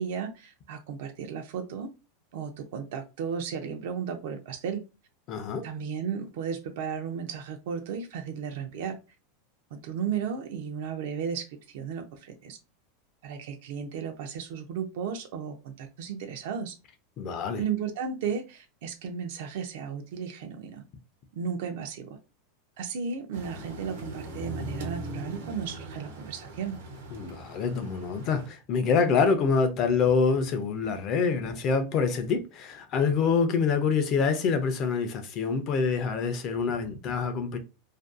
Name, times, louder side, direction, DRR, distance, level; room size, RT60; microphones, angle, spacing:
voice 1, 0.0-1.9 2.3-4.8 5.6-9.0 9.7-12.6 13.2-16.7 17.6-20.8 21.4-22.2 22.8-26.8, right 7 dB, 65° right, 0.4 m, -34 dB
voice 2, 5.3-5.6 17.2-17.6 27.1-37.6, left 5 dB, 35° left, 0.4 m, -26 dB
sound 1, 23.3-28.5, right 1 dB, 85° right, 0.9 m, -40 dB
2.5 x 2.2 x 2.4 m
supercardioid pair, 160°, 0 cm